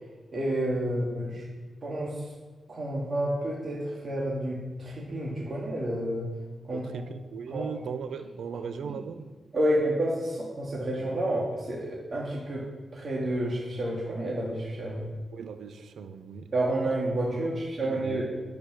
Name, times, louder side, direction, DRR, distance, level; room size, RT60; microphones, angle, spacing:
voice 1, 0.3-1.4 1.8-2.1 2.7-6.2 6.7-7.0 7.5-7.7 8.9-9.0 9.5-12.6 12.9-15.1 16.5-18.2, right 1 dB, 45° right, -5 dB, 2.2 m, -29 dB
voice 2, 6.7-9.3 15.3-16.5 16.8-16.9 17.3-17.5 17.8-18.2, right 6 dB, 85° right, 10 dB, 0.8 m, -38 dB
10.5 x 8.9 x 6.3 m, 1.3 s
wide cardioid pair, 120°, 0 cm